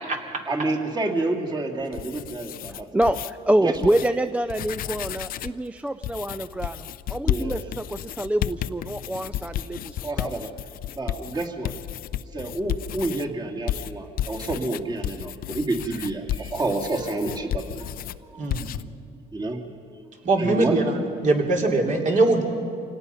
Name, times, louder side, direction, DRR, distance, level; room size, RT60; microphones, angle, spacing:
voice 1, 0.5-2.9 3.6-3.9 7.2-7.7 10.0-10.5 10.9-11.7 12.3-17.9 18.3-18.5 19.3-19.6 20.4-20.7, right 2 dB, 25° right, 1 dB, 2.4 m, -29 dB
sound 1, 1.8-3.3 3.7-4.1 4.4-5.6 6.0-13.3 13.7-18.2 18.5-18.8, left 11 dB, 60° left, 0.5 m, -32 dB
voice 2, 2.7-10.4, right 1 dB, 5° right, 10 dB, 0.4 m, -26 dB
voice 3, 20.2-22.4, right 2 dB, 50° right, 1 dB, 3.1 m, -21 dB
26.5 x 18.0 x 5.6 m, 2.4 s
cardioid pair, 110°, 17 cm